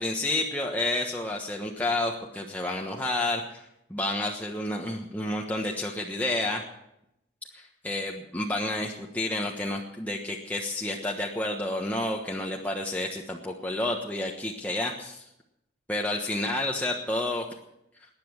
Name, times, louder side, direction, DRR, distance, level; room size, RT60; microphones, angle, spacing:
voice 1, 0.0-3.6 3.9-6.6 7.5-15.2 15.9-17.5, left 2 dB, 10° left, -1 dB, 1.3 m, -30 dB
19.0 x 10.5 x 6.4 m, 0.84 s
head